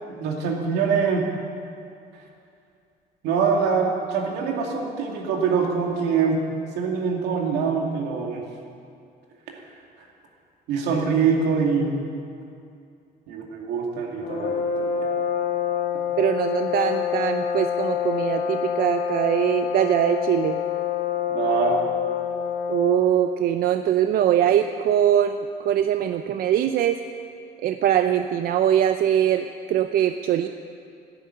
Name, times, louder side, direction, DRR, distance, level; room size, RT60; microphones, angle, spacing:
voice 1, 0.1-1.3 3.2-6.4 6.8-8.4 10.7-12.0 13.3-15.1 21.3-21.8, right 5 dB, 85° right, 0 dB, 2.4 m, -24 dB
sound 1, 14.2-23.2, left 8 dB, 65° left, 2.0 m, -27 dB
voice 2, 16.2-20.6 22.7-27.0 27.6-30.5, right 10 dB, 60° right, 8 dB, 0.6 m, -22 dB
12.0 x 10.5 x 9.1 m, 2.5 s
cardioid pair, 110°, 17 cm